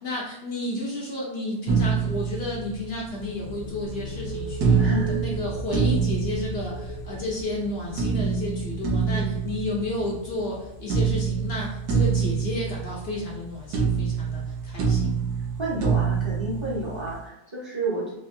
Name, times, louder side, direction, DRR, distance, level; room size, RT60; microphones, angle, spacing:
voice 1, 0.0-4.9 5.2-15.1, left 2 dB, 55° left, -3 dB, 0.7 m, -32 dB
sound 1, 1.7-3.2 4.6-7.2 8.0-10.5 10.9-13.5 13.7-17.2, right 6 dB, 70° right, 1.2 m, -26 dB
sound 2, 3.1-14.6, right 2 dB, 85° left, 0.4 m, -39 dB
voice 2, 4.8-5.2 9.1-9.5 15.6-18.1, right 1 dB, 20° right, -9 dB, 0.8 m, -31 dB
4.1 x 2.7 x 2.6 m, 0.92 s
omnidirectional pair, 1.8 m